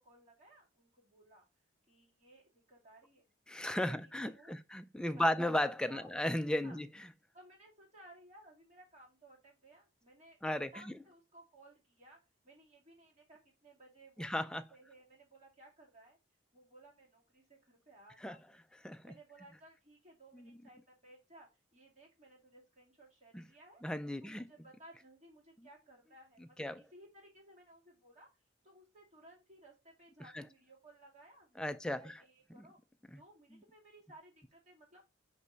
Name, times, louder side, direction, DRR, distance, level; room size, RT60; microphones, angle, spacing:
voice 1, 0.0-1.5 1.9-3.3 3.8-4.6 5.0-5.6 5.9-6.2 6.6-6.8 7.3-12.2 12.4-16.2 16.5-18.6 19.0-23.8 24.2-32.8 33.1-35.1, right 1 dB, 35° right, 2.4 m, -60 dB
voice 2, 3.5-6.9 10.4-10.9 14.2-14.6 18.2-18.4 18.8-19.0 20.3-20.5 23.3-23.4 23.8-24.5 26.6-26.8 30.3-30.4 31.6-32.1 32.6-32.7 33.1-33.2, left 1 dB, 5° left, 0.3 m, -35 dB
5.4 x 5.2 x 4.0 m
head